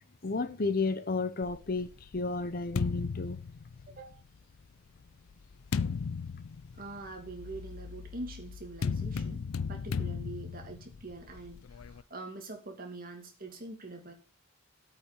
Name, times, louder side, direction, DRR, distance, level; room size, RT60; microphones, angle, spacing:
voice 1, 0.2-3.4, left 3 dB, 45° left, 0.7 m, -32 dB
sound 1, 1.4-4.2 5.0-12.0, left 5 dB, 75° left, 0.5 m, -36 dB
voice 2, 3.9-4.2 6.7-9.4 9.7-14.1, right 2 dB, 40° right, 2.5 m, -44 dB
8.8 x 5.7 x 8.2 m
head